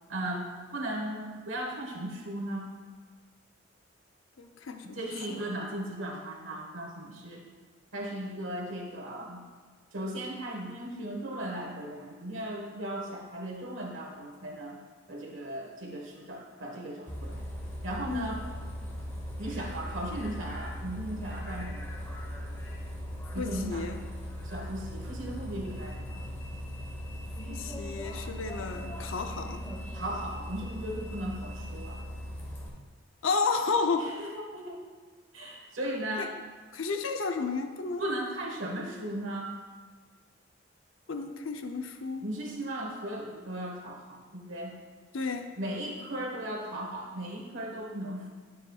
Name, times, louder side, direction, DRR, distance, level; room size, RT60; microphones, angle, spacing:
voice 1, 0.1-2.7 4.8-7.5 7.9-9.4 9.9-14.8 15.1-17.4 17.8-18.5 19.4-22.1 23.3-23.9 24.4-26.3 29.9-32.0 34.0-34.8 35.3-36.3 38.0-39.5 42.2-44.7 45.6-48.3, right 1 dB, 80° right, -1 dB, 1.5 m, -37 dB
voice 2, 4.4-5.5 18.0-18.4 23.4-24.0 27.4-29.7 33.2-34.1 36.2-36.3 36.7-38.0 41.1-42.2 45.1-45.5, left 4 dB, 80° left, 6 dB, 0.6 m, -32 dB
Bus, 17.1-32.7, equal, 10° left, 1.2 m, -39 dB
12.0 x 7.2 x 2.4 m, 1.5 s
head